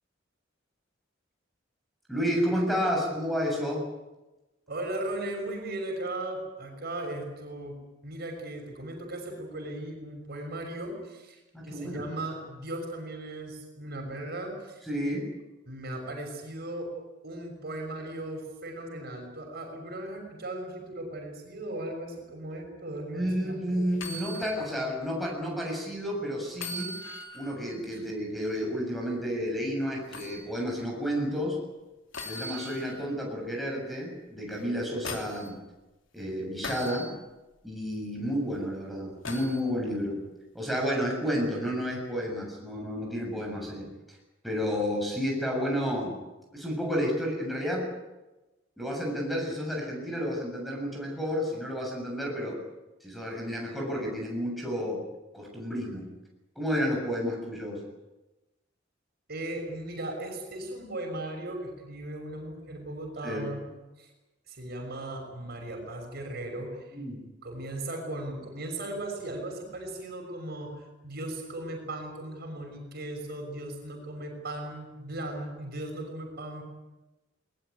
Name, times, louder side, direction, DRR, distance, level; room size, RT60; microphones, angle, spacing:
voice 1, 2.1-3.8 11.5-12.0 14.9-15.2 23.1-26.9 27.3-31.6 32.2-35.6 36.1-37.1 37.6-40.2 40.5-43.9 44.4-46.1 46.5-47.8 48.8-52.6 53.0-55.0 55.3-56.1 56.6-57.8 63.2-63.5 66.9-67.2, equal, ahead, -2 dB, 7.5 m, -31 dB
voice 2, 4.7-14.8 15.7-16.9 17.2-23.8 27.9-28.0 59.3-63.7 64.0-64.1 64.5-67.0 67.4-76.6, right 1 dB, 55° right, 3 dB, 6.3 m, -37 dB
sound 1, 23.9-24.6 25.0-25.1 26.5-27.6 30.1-30.4 32.1-33.1 34.6-35.5 36.6-37.1 39.2-39.6 41.4-41.5, left 1 dB, 80° left, 3.4 m, -39 dB
21.0 x 20.5 x 9.5 m, 1.1 s
head